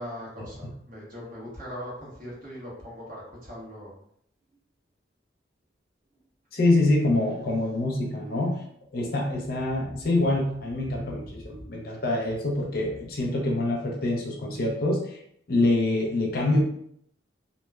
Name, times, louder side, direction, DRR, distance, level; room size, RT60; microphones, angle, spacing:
voice 1, 0.0-3.9 10.9-11.7, equal, 45° right, -5 dB, 1.0 m, -40 dB
voice 2, 6.5-8.6 8.9-15.2 15.5-16.6, left 2 dB, 55° left, -1 dB, 0.5 m, -25 dB
3.0 x 2.1 x 2.2 m, 0.67 s
head